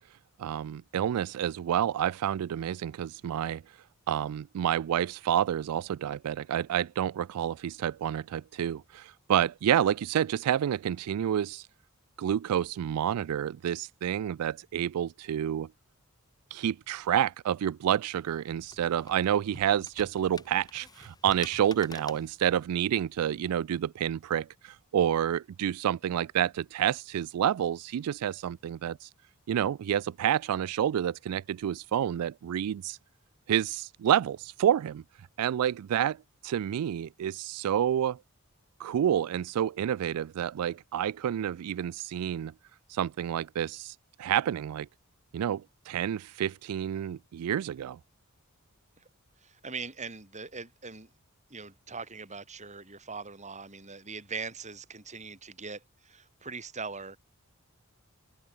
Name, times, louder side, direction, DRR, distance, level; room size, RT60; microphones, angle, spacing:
voice 1, 0.4-3.8 4.1-11.7 12.2-15.7 16.5-29.1 29.5-33.0 33.5-35.0 35.4-38.2 38.8-42.5 42.9-44.9 45.3-48.0, right 10 dB, 85° right, 0.3 m, -29 dB
sound 1, 18.1-23.5, left 3 dB, 20° left, 1.5 m, -49 dB
voice 2, 49.4-51.1 51.5-57.2, right 4 dB, 35° right, 5.8 m, -41 dB
open air
head